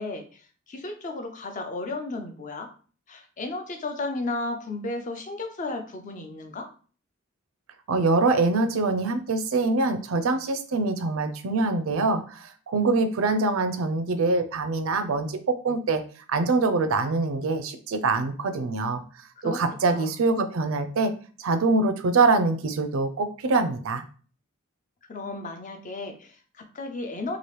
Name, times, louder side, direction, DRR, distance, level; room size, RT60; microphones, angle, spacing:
voice 1, 0.0-2.7 3.1-6.7 19.4-19.6 19.9-20.1 25.1-27.4, left 2 dB, 35° left, 5 dB, 0.5 m, -34 dB
voice 2, 7.9-16.0 16.3-19.0 19.4-21.1 21.4-24.0, right 3 dB, 75° right, 9 dB, 0.4 m, -24 dB
2.9 x 2.4 x 3.2 m, 0.40 s
head